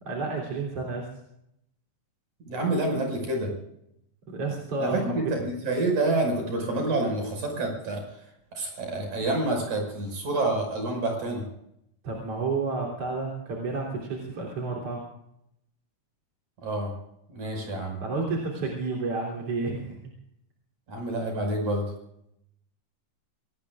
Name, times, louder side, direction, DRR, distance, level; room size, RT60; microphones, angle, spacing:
voice 1, 0.0-1.1 4.3-5.2 12.0-15.1 18.0-20.1, right 3 dB, 50° right, -2 dB, 4.3 m, -31 dB
voice 2, 2.5-3.5 4.8-4.9 5.3-8.0 8.5-11.4 16.6-16.9 17.3-18.0 20.9-21.8, right 2 dB, 65° right, 2 dB, 7.0 m, -28 dB
26.5 x 19.0 x 2.5 m, 0.77 s
omnidirectional pair, 3.6 m